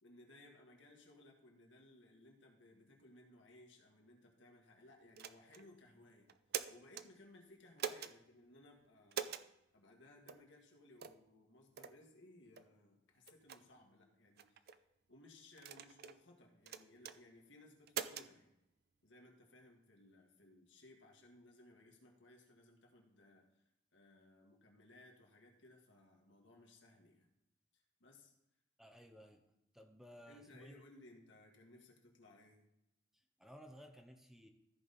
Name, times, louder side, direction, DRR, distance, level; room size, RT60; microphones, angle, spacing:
voice 1, 0.0-6.3 6.7-9.4 9.7-14.7 15.1-18.5 19.0-23.5 23.9-27.3 27.7-28.3 30.3-32.6, left 2 dB, 75° left, 0 dB, 1.9 m, -62 dB
sound 1, 5.2-5.6 6.3-7.1 7.8-8.1 9.1-9.5 10.3-10.4 11.0-11.2 11.8-12.0 12.6-12.7 13.3-13.6 14.4-14.8 15.6-16.2 16.7-17.2 17.9-18.3, right 8 dB, 55° right, 0.5 m, -43 dB
voice 2, 28.8-29.4 29.7-30.7 33.1-34.5, equal, ahead, 4 dB, 0.7 m, -57 dB
14.0 x 5.2 x 4.2 m, 0.88 s
head